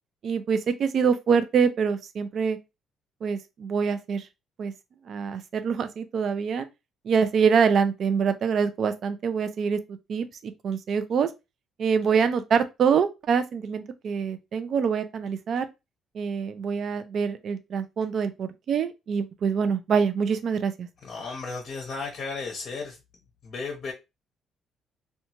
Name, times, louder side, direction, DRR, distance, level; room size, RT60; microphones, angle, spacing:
voice 1, 0.2-2.6 3.2-4.3 4.6-4.7 5.1-6.7 7.0-11.3 11.8-15.7 16.1-20.9, right 6 dB, 55° right, 0.3 m, -25 dB
voice 2, 21.0-23.0 23.4-23.9, left 4 dB, 50° left, 0.6 m, -34 dB
2.7 x 2.2 x 2.8 m
cardioid pair, 120°, 0 cm